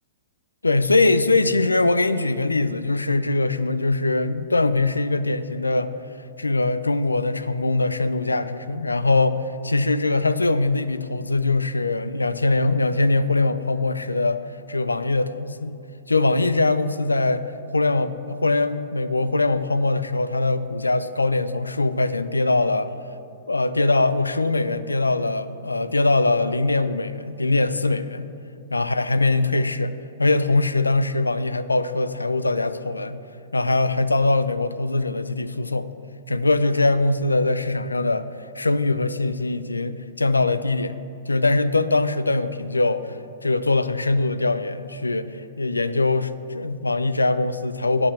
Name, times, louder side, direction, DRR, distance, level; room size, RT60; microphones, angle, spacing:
voice 1, 0.6-5.9 6.4-14.4 14.7-15.8 16.1-17.5 17.7-22.9 23.5-28.3 28.7-33.2 33.5-35.9 36.3-38.3 38.6-43.2 43.4-48.1, left 2 dB, 85° left, 13 dB, 0.4 m, -22 dB
9.5 x 6.1 x 7.4 m, 2.6 s
figure-of-eight pair, 110°, 0 cm